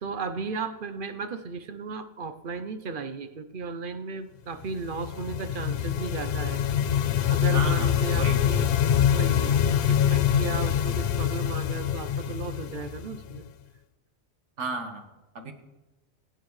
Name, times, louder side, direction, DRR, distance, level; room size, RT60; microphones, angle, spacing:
voice 1, 0.0-6.6 7.3-8.7 9.1-13.4, right 4 dB, 55° right, 10 dB, 0.8 m, -35 dB
sound 1, 4.7-13.5, left 9 dB, 65° left, 0.7 m, -25 dB
voice 2, 7.5-8.6 14.6-15.1 15.4-15.5, right 3 dB, 90° right, 4 dB, 1.7 m, -34 dB
22.5 x 9.1 x 3.2 m, 1.1 s
omnidirectional pair, 1.2 m